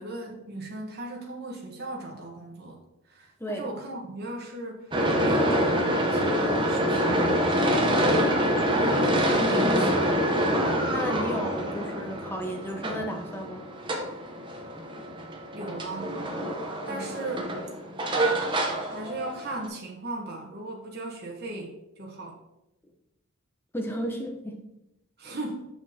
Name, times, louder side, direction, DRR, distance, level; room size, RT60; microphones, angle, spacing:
voice 1, 0.0-2.8 3.1-7.1 15.5-16.2 16.9-17.5 18.9-22.4 25.2-25.6, right 2 dB, 50° right, -1 dB, 1.0 m, -37 dB
sound 1, 4.9-19.7, equal, 20° right, 0.7 m, -26 dB
voice 2, 8.5-10.4 10.9-13.6 16.9-17.1 23.7-24.6, equal, 10° left, 2 dB, 0.7 m, -34 dB
6.6 x 5.9 x 2.8 m, 0.88 s
head